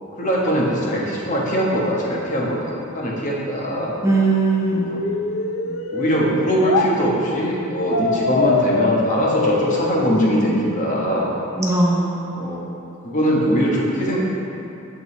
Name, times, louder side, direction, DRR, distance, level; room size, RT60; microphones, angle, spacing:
voice 1, 0.2-4.0 4.7-5.0 5.9-11.3 12.4-12.7 13.0-14.2, equal, 40° left, -4 dB, 1.3 m, -21 dB
voice 2, 4.0-5.2 5.6-5.8 11.6-12.5, right 3 dB, 15° right, -4 dB, 0.7 m, -20 dB
sound 1, 4.1-6.9 7.9-10.9, left 4 dB, 85° left, 0.5 m, -24 dB
8.4 x 7.2 x 3.2 m, 2.7 s
head